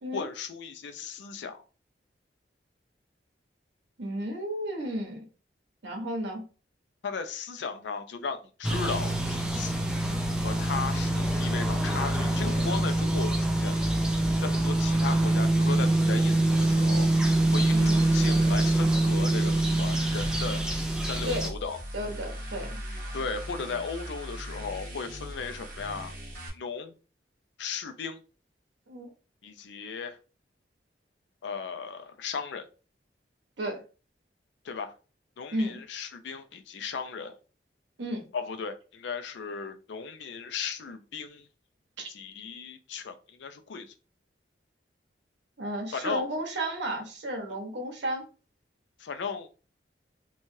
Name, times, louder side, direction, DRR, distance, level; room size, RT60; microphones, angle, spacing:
voice 1, 0.1-1.6 7.0-9.7 10.4-13.8 14.4-17.1 17.5-20.6 21.0-21.8 23.1-26.2 26.5-26.9 27.6-28.2 29.4-30.2 31.4-32.7 34.6-34.9 35.4-37.3 38.3-41.5 42.1-43.9 45.9-46.2 47.5-47.6 49.0-49.5, left 5 dB, 75° left, 0.4 m, -36 dB
voice 2, 4.0-5.2 5.8-6.4 17.7-18.0 21.2-21.5 21.9-22.7 28.9-29.1 33.6-33.8 35.5-35.8 38.0-38.2 42.0-42.1 45.6-48.2, right 1 dB, 75° right, 0.9 m, -33 dB
sound 1, 8.6-21.5, right 1 dB, 5° right, 0.3 m, -25 dB
sound 2, 17.1-26.5, equal, 45° right, 1.0 m, -39 dB
3.1 x 2.3 x 2.6 m
head